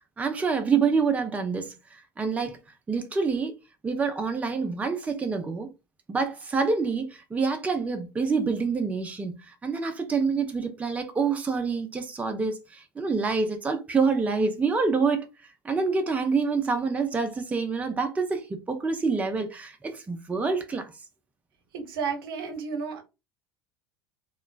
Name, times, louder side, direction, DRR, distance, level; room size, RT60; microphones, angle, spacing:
voice 1, 0.2-1.7 2.2-2.6 2.9-3.5 3.8-5.7 6.1-9.4 9.6-15.3 15.6-20.9, right 4 dB, 10° right, 0.5 m, -27 dB
voice 2, 21.7-23.0, right 5 dB, 65° right, 0.7 m, -32 dB
2.9 x 2.2 x 2.4 m
figure-of-eight pair, 70°, 13 cm